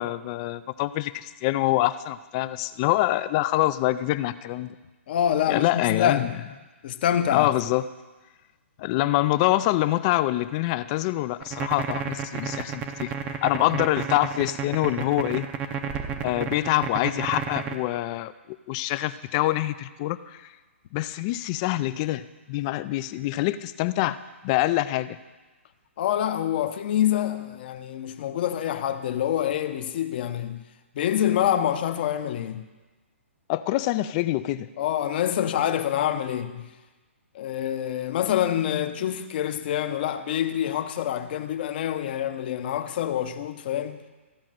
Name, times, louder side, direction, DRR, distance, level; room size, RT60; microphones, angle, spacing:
voice 1, 0.0-4.7 5.5-6.3 7.3-7.8 8.8-13.1 13.4-15.5 16.2-18.3 18.7-20.4 20.9-24.2 24.4-25.2 33.5-34.7, left 16 dB, 30° left, 0.3 m, -25 dB
voice 2, 5.1-6.4 6.8-7.5 26.0-30.6 30.9-32.6 34.8-36.7 37.3-44.0, left 10 dB, 45° left, 0.8 m, -26 dB
sound 1, 11.4-17.8, right 7 dB, 20° right, 0.7 m, -31 dB
14.5 x 5.1 x 7.5 m
hypercardioid pair, 150°, 7 cm